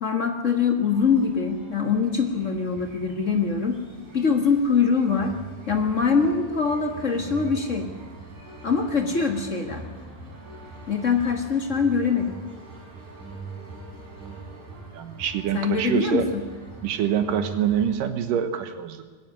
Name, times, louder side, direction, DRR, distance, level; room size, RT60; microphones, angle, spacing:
voice 1, 0.0-3.7 4.1-5.3 5.7-7.9 8.6-9.8 10.9-12.3 15.5-16.4, left 5 dB, 35° left, 4 dB, 1.2 m, -23 dB
sound 1, 0.9-18.0, right 3 dB, 70° right, 6.9 m, -42 dB
voice 2, 14.9-16.3 16.8-19.0, right 9 dB, 85° right, 9 dB, 2.9 m, -25 dB
20.0 x 15.5 x 9.6 m, 1.4 s
omnidirectional pair, 3.8 m